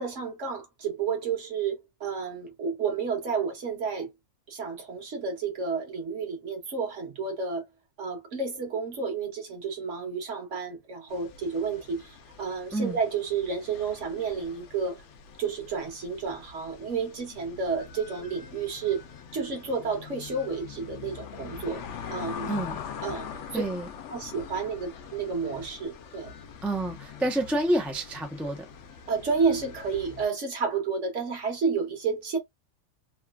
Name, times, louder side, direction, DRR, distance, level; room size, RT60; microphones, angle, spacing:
voice 1, 0.0-4.1 4.5-7.7 8.0-15.0 15.4-19.0 19.3-21.8 22.1-22.5 23.0-23.6 24.1-26.3 29.1-32.4, right 5 dB, 60° right, 1.3 m, -31 dB
sound 1, 11.1-30.3, left 7 dB, 65° left, 0.8 m, -43 dB
voice 2, 22.5-22.8 23.5-23.9 26.6-28.7, right 1 dB, ahead, 0.3 m, -28 dB
3.1 x 2.4 x 2.2 m
omnidirectional pair, 1.5 m